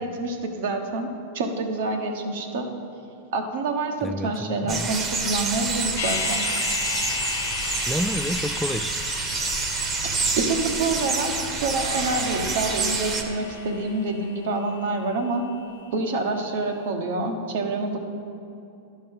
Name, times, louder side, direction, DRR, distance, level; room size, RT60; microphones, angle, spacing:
voice 1, 0.0-2.7 3.3-6.5 10.4-15.4 15.9-18.0, right 3 dB, 65° right, 4 dB, 1.1 m, -27 dB
voice 2, 4.0-4.9 7.8-9.0, equal, ahead, 13 dB, 0.3 m, -29 dB
sound 1, 4.7-13.2, right 4 dB, 30° right, 1.1 m, -27 dB
sound 2, 6.0-16.0 16.3-16.4, left 8 dB, 75° left, 0.5 m, -35 dB
sound 3, 11.8-14.6, right 2 dB, 90° right, 1.9 m, -37 dB
11.5 x 5.4 x 5.5 m, 2.7 s
hypercardioid pair, 100°, 0 cm